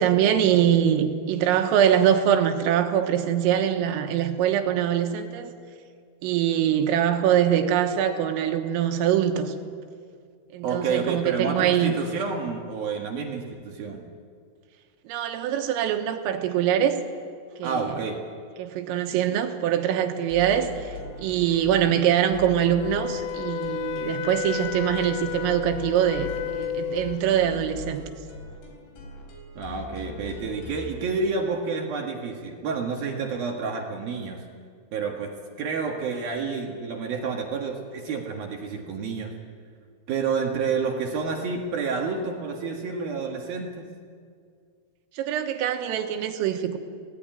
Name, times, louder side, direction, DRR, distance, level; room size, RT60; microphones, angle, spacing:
voice 1, 0.0-5.5 6.2-9.5 10.5-11.9 15.1-17.0 17.6-17.9 18.6-28.1 45.2-46.8, right 9 dB, 90° right, 5 dB, 4.0 m, -23 dB
voice 2, 10.6-14.0 17.6-18.2 29.5-34.4 34.9-35.3 35.6-39.3 40.1-43.9, right 5 dB, 55° right, 1 dB, 3.0 m, -29 dB
sound 1, 20.3-31.0, left 4 dB, 65° left, 6.4 m, -41 dB
Wind instrument woodwind instrument, 22.5-27.3, left 12 dB, 80° left, 2.6 m, -32 dB
25.5 x 19.0 x 9.2 m, 2.1 s
omnidirectional pair, 5.8 m